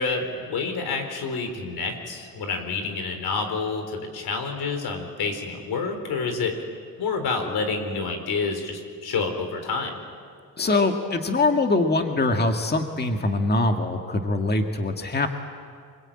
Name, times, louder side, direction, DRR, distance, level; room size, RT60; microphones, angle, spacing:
voice 1, 0.0-6.6 7.0-10.0, left 4 dB, 85° left, 5 dB, 4.2 m, -28 dB
voice 2, 10.6-15.3, left 2 dB, 25° left, 4 dB, 1.8 m, -23 dB
26.0 x 22.5 x 8.9 m, 2.1 s
cardioid pair, 110°, 37 cm